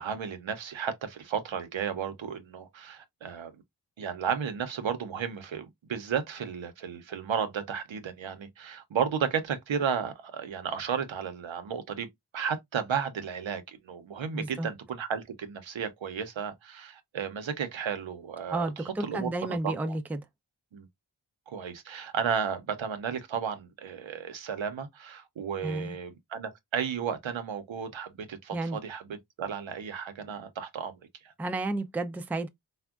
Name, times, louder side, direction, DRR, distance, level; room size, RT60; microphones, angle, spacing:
voice 1, 0.0-3.5 4.0-12.1 12.3-20.0 20.7-20.9 21.5-31.0 31.2-31.3, right 7 dB, 85° right, 0.7 m, -33 dB
voice 2, 14.3-14.7 18.5-20.2 25.6-26.0 28.5-28.8 31.4-32.5, right 2 dB, 5° right, 0.3 m, -32 dB
3.4 x 2.1 x 2.3 m
wide cardioid pair, 50°, 46 cm